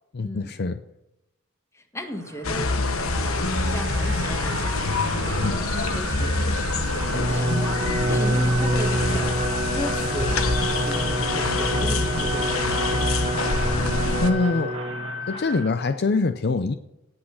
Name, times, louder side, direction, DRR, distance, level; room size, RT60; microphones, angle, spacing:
voice 1, 0.1-0.8 5.4-5.6 13.1-13.2 14.2-14.8 15.3-16.7, left 3 dB, 50° left, 10 dB, 0.5 m, -24 dB
voice 2, 1.7-9.4 9.7-13.0, equal, 15° left, 5 dB, 1.5 m, -36 dB
sound 1, 2.0-15.7, right 3 dB, 65° right, 1.6 m, -35 dB
sound 2, 2.4-14.3, left 3 dB, 85° left, 1.3 m, -25 dB
Bowed string instrument, 7.0-15.3, right 1 dB, 30° right, 0.7 m, -27 dB
17.5 x 6.4 x 5.9 m, 0.90 s
head